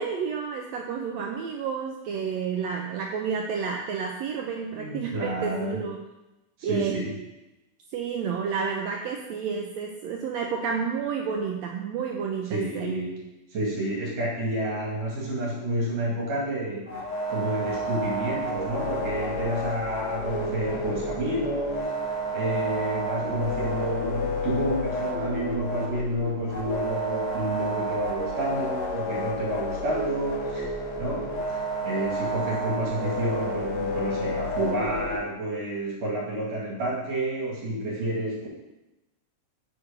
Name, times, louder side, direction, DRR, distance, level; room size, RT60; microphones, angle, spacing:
voice 1, 0.0-6.0 6.6-7.0 7.9-12.9, right 6 dB, 80° right, 1 dB, 1.6 m, -30 dB
voice 2, 4.7-5.8 6.6-7.1 12.5-13.2 13.5-21.9 22.3-30.7 31.0-31.4 31.8-38.5, right 1 dB, 55° right, -4 dB, 3.1 m, -30 dB
sound 1, 16.9-35.2, equal, 80° left, 0.9 m, -30 dB
7.7 x 4.5 x 5.1 m, 0.98 s
omnidirectional pair, 3.6 m